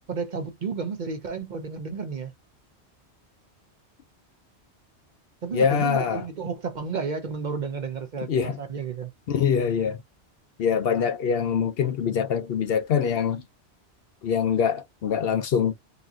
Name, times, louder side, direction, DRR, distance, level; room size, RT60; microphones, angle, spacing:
voice 1, 0.1-2.3 5.4-9.1, right 5 dB, 50° right, 0.7 m, -32 dB
voice 2, 5.5-6.2 8.3-8.6 9.3-10.0 10.6-13.4 14.2-15.7, left 7 dB, 65° left, 0.8 m, -24 dB
4.0 x 2.7 x 2.3 m
omnidirectional pair, 1.2 m